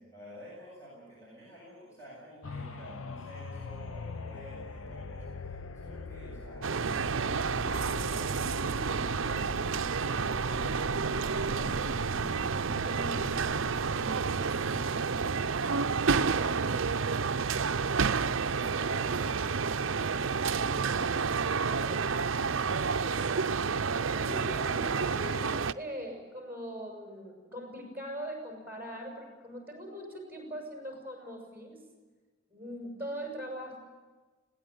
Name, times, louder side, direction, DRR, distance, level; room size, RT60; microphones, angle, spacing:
voice 1, 0.0-13.4 13.7-15.6 15.9-23.3, equal, 15° left, -6 dB, 7.6 m, -51 dB
sound 1, 2.4-16.1 16.6-16.7, left 2 dB, 80° left, 0.8 m, -43 dB
sound 2, 6.6-25.7, right 5 dB, 70° right, 0.7 m, -30 dB
voice 2, 12.8-13.2 24.1-31.8 32.5-33.8, equal, 10° right, 1 dB, 6.7 m, -41 dB
21.0 x 17.5 x 9.3 m, 1.3 s
head